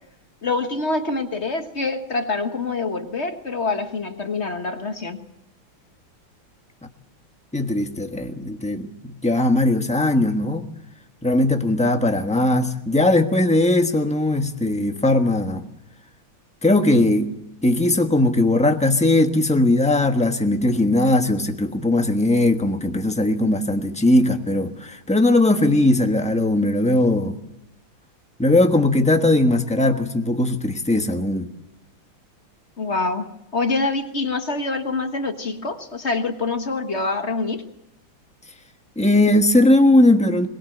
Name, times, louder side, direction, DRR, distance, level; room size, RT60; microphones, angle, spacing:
voice 1, 0.4-5.3 32.8-37.7, left 3 dB, 35° left, 1.5 m, -26 dB
voice 2, 7.5-10.6 11.2-15.6 16.6-17.3 17.6-27.4 28.4-31.5 39.0-40.5, left 1 dB, 5° left, 1.0 m, -19 dB
22.5 x 20.0 x 7.9 m
omnidirectional pair, 2.2 m